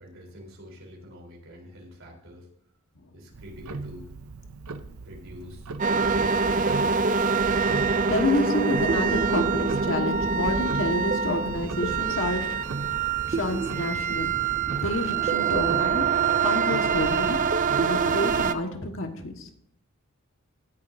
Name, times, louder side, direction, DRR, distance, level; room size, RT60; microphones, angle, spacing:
voice 1, 0.0-2.5 3.1-4.0 5.0-5.7 6.0-7.2, equal, 60° right, -1 dB, 3.8 m, -45 dB
Tick-tock, 3.3-18.6, right 3 dB, 80° right, 0.7 m, -40 dB
sound 1, 5.8-18.5, right 5 dB, 35° right, 0.4 m, -25 dB
voice 2, 8.1-12.8 13.3-19.5, left 2 dB, 60° left, 4 dB, 1.5 m, -29 dB
16.5 x 10.5 x 2.7 m, 0.70 s
head